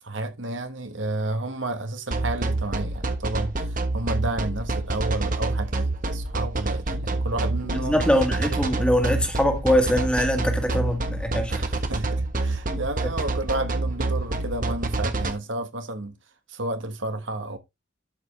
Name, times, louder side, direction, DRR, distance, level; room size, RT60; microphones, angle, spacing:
voice 1, 0.0-8.0 11.5-16.2 16.5-17.6, right 2 dB, 75° right, 1.4 m, -31 dB
sound 1, 2.1-15.3, right 2 dB, 45° right, 1.3 m, -26 dB
voice 2, 7.8-11.7 12.7-12.8, equal, 5° left, 1.7 m, -23 dB
12.0 x 5.2 x 3.3 m
head